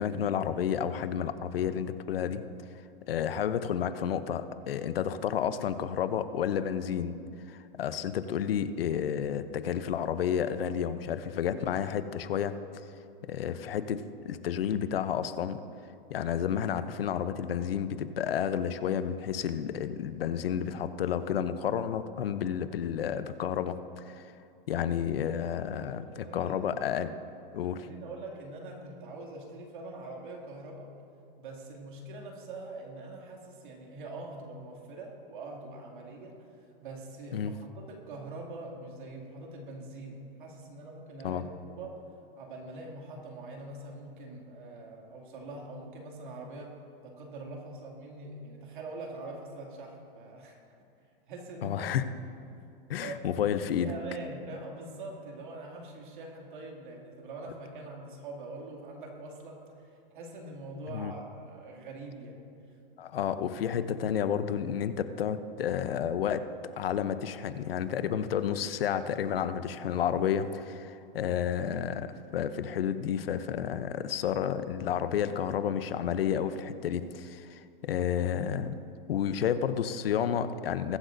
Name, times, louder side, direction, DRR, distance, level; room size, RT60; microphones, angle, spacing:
voice 1, 0.0-2.4 3.1-7.2 7.5-12.6 13.3-15.6 16.1-24.2 24.7-27.2 27.5-27.9 37.3-37.5 41.2-41.4 51.6-52.0 52.9-53.9 60.9-61.1 63.0-66.5 66.8-72.1 72.3-78.7 79.1-81.0, left 8 dB, 75° left, 12 dB, 0.8 m, -31 dB
voice 2, 25.7-26.6 27.8-30.9 31.4-42.0 42.4-50.6 51.3-52.2 53.0-53.5 53.8-62.4 62.7-62.8, right 2 dB, 55° right, -1 dB, 2.5 m, -43 dB
21.5 x 8.1 x 2.7 m, 2.6 s
supercardioid pair, 180°, 29 cm